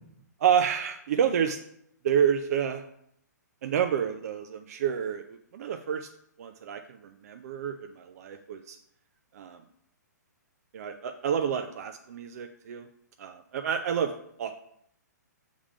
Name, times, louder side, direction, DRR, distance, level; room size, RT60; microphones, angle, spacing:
voice 1, 0.4-1.6 2.0-2.8 3.6-6.1 6.4-8.8 9.3-9.6 10.7-12.9 13.2-14.1 14.4-14.5, right 8 dB, 55° right, 6 dB, 0.5 m, -29 dB
7.1 x 3.7 x 4.9 m, 0.73 s
hypercardioid pair, 140°, 10 cm